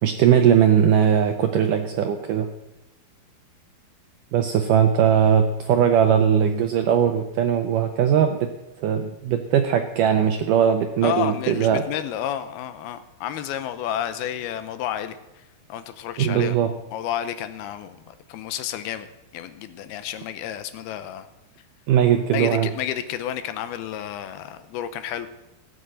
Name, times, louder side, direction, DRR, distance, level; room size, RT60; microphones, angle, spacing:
voice 1, 0.0-2.5 4.3-8.5 8.8-11.8 16.2-16.7 21.9-22.7, right 8 dB, 80° right, 6 dB, 1.9 m, -19 dB
voice 2, 11.0-19.1 19.3-21.3 22.3-25.3, left 10 dB, 75° left, 11 dB, 2.6 m, -31 dB
17.0 x 8.0 x 7.6 m, 1.0 s
omnidirectional pair, 4.7 m